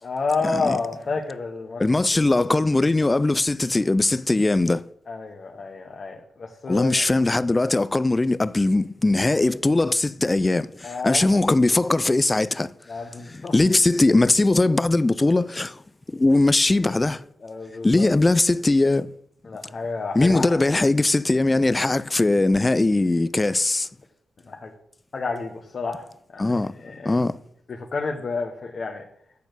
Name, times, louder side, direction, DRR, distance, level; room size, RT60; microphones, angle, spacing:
voice 1, 0.0-1.8 5.1-7.0 10.8-11.2 12.9-13.5 17.4-18.1 19.4-20.6 24.5-24.7 25.1-26.1 26.3-27.2 27.7-29.1, left 4 dB, 55° left, 1.1 m, -30 dB
voice 2, 1.8-4.8 6.7-12.7 13.5-15.8 16.1-17.2 17.8-19.1 20.1-23.9 26.4-26.7 27.0-27.4, left 2 dB, 25° left, 0.4 m, -20 dB
8.4 x 4.3 x 6.7 m
cardioid pair, 55°, 0 cm